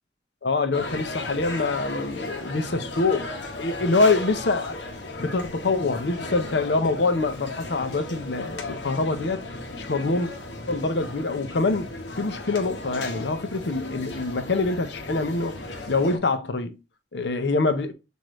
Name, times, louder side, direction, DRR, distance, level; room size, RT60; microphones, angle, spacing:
voice 1, 0.4-3.3 3.6-4.8 5.2-9.4 9.8-10.3 10.7-15.6 15.9-16.8 17.1-17.9, left 3 dB, 70° left, 0.7 m, -25 dB
sound 1, 0.7-16.2, left 2 dB, 90° left, 1.0 m, -35 dB
6.1 x 2.7 x 3.1 m
head